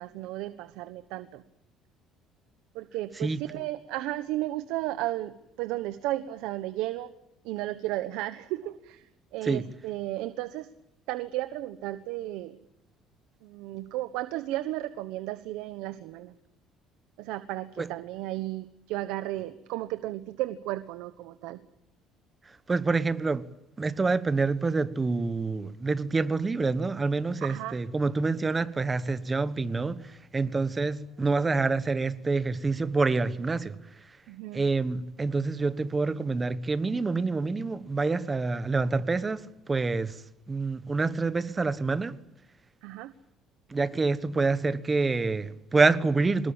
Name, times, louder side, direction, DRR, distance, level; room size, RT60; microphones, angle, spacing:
voice 1, 0.0-1.4 2.7-7.1 7.4-10.7 11.1-12.6 13.4-16.3 17.2-21.6 27.4-27.8 34.3-34.6 42.8-43.1, right 16 dB, 80° right, 1.1 m, -34 dB
voice 2, 22.7-23.5 23.8-33.7 34.5-42.2 43.7-46.5, right 3 dB, 15° right, 1.2 m, -27 dB
23.5 x 20.5 x 8.7 m
cardioid pair, 140°, 0 cm